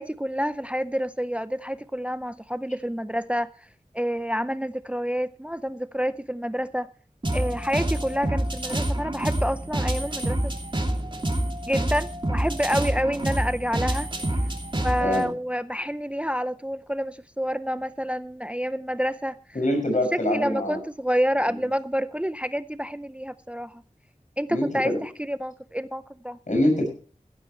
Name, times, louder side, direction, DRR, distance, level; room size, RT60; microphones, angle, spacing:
voice 1, 0.0-3.5 3.9-6.9 7.3-10.5 11.6-14.1 14.7-19.4 20.1-23.8 24.4-26.4, equal, 10° right, 0.5 m, -28 dB
sound 1, 7.2-15.2, right 1 dB, 35° right, 2.7 m, -27 dB
voice 2, 15.0-15.3 19.5-20.8 21.5-21.6 24.5-25.0 26.5-26.9, left 1 dB, 65° left, 6.6 m, -24 dB
15.0 x 13.5 x 3.1 m
wide cardioid pair, 50°, 14 cm